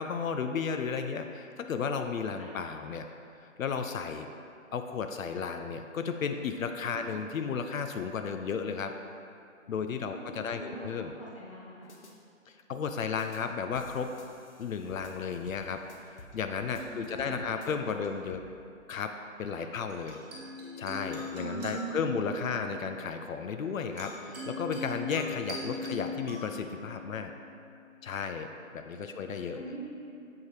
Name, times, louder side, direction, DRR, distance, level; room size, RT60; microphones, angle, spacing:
voice 1, 0.0-3.1 3.4-4.3 4.7-9.0 9.7-11.1 12.5-14.2 14.6-18.4 18.9-19.1 19.4-20.2 20.8-27.3 28.0-28.5 28.7-29.6, left 6 dB, 80° left, 6 dB, 0.5 m, -34 dB
voice 2, 10.0-10.9 11.2-11.9 16.8-18.1 19.6-19.7 21.6-22.6 28.9-29.3 29.5-29.9, right 1 dB, 25° left, -5 dB, 0.8 m, -46 dB
sound 1, 11.9-12.1 13.2-13.4 13.8-16.4 16.6-17.3 17.6-18.4, left 2 dB, 55° left, 0.8 m, -52 dB
sound 2, 16.7-18.5 19.9-28.4, equal, 30° right, 1.2 m, -41 dB
7.4 x 4.6 x 3.2 m, 2.5 s
hypercardioid pair, 160°, 40 cm